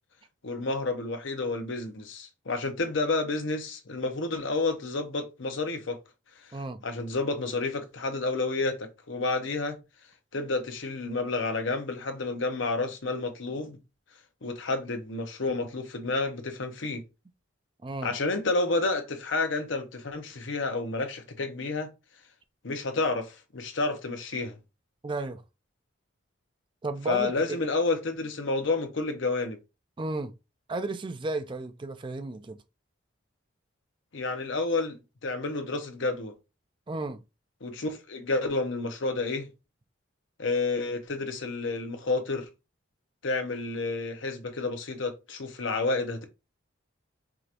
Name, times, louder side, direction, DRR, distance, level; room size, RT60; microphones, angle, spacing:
voice 1, 0.4-6.0 6.4-6.5 6.8-9.8 10.3-13.8 14.4-17.0 18.0-21.9 22.6-24.6 27.1-29.6 34.1-36.3 37.6-39.5 40.4-42.5 43.2-46.2, left 3 dB, 70° left, 0.8 m, -30 dB
voice 2, 6.5-6.8 17.8-18.1 25.0-25.4 26.8-27.6 30.0-30.3 30.7-32.6 36.9-37.2, right 2 dB, 25° right, 0.3 m, -33 dB
4.8 x 2.9 x 2.5 m
head